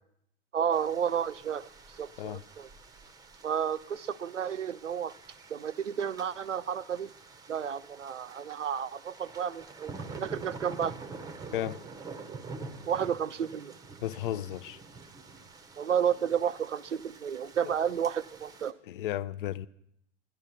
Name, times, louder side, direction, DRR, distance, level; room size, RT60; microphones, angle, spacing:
voice 1, 0.5-1.7 2.0-2.7 3.4-5.1 5.5-7.1 7.5-10.9 12.9-13.8 15.8-18.7, right 8 dB, 80° right, 0.5 m, -31 dB
sound 1, 0.7-18.7, right 4 dB, 10° right, 0.7 m, -47 dB
voice 2, 14.0-14.8 17.6-17.7 18.9-19.7, left 13 dB, 45° left, 0.5 m, -34 dB
12.5 x 11.0 x 5.9 m
figure-of-eight pair, 95°, 36 cm